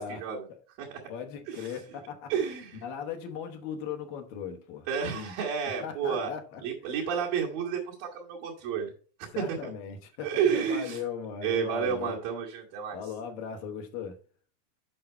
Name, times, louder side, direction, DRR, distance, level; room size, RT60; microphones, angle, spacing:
voice 1, 0.0-0.4 0.8-1.0 1.5-1.8 2.3-2.8 4.9-6.3 6.6-8.9 9.2-9.7 10.2-11.0 11.4-13.0, right 7 dB, 85° right, 3.2 m, -31 dB
voice 2, 1.1-2.3 2.8-4.9 5.1-5.3 5.8-7.1 9.3-12.2 12.9-14.2, left 7 dB, 80° left, 2.9 m, -38 dB
8.4 x 5.5 x 4.4 m
omnidirectional pair, 3.9 m